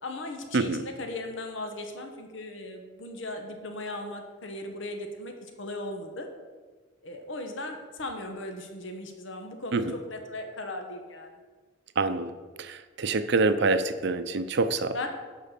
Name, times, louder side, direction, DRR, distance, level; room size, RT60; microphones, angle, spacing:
voice 1, 0.0-5.3 5.6-6.3 7.0-11.3 14.9-15.1, left 2 dB, 70° left, 4 dB, 1.3 m, -37 dB
voice 2, 12.0-12.3 12.6-15.0, right 3 dB, 60° right, 11 dB, 0.6 m, -26 dB
11.0 x 4.7 x 6.7 m, 1.4 s
head